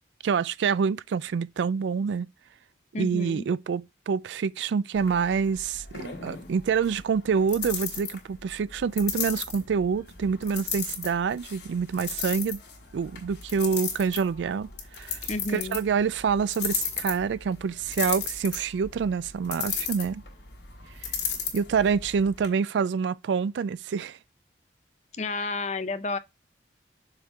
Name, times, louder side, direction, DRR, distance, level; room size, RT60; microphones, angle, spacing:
voice 1, 0.2-2.3 3.0-12.6 12.9-14.7 15.0-15.2 15.5-20.2 21.5-24.2, right 6 dB, 85° right, 0.3 m, -27 dB
voice 2, 2.9-3.5 15.3-15.8 25.1-26.2, left 3 dB, 40° left, 0.6 m, -31 dB
sound 1, 4.9-22.5, left 7 dB, 80° left, 2.2 m, -36 dB
6.5 x 3.6 x 4.6 m
head